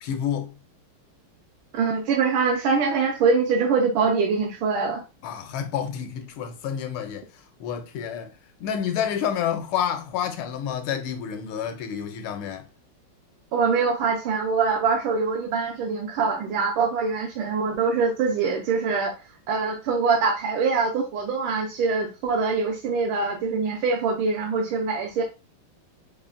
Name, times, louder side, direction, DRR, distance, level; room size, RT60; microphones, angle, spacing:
voice 1, 0.0-0.5 5.2-7.2 7.6-8.3 8.6-12.7, left 8 dB, 80° left, 1.5 m, -29 dB
voice 2, 1.7-5.0 13.5-19.1 19.5-25.2, right 4 dB, 80° right, 1.5 m, -24 dB
5.5 x 2.1 x 2.4 m
omnidirectional pair, 2.3 m